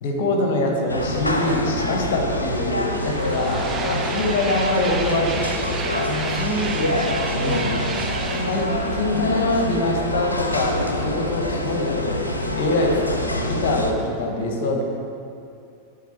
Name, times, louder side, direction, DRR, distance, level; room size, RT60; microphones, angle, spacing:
voice 1, 0.0-5.8 7.3-7.8 8.4-14.8, left 2 dB, 50° left, 1 dB, 1.2 m, -24 dB
sound 1, 0.9-13.9, left 1 dB, 80° left, 0.5 m, -26 dB
sound 2, 2.1-10.5, right 5 dB, 25° right, 0.5 m, -33 dB
voice 2, 6.1-7.8, equal, 10° left, -3 dB, 1.2 m, -29 dB
9.7 x 4.0 x 4.4 m, 2.6 s
figure-of-eight pair, 90°, 0 cm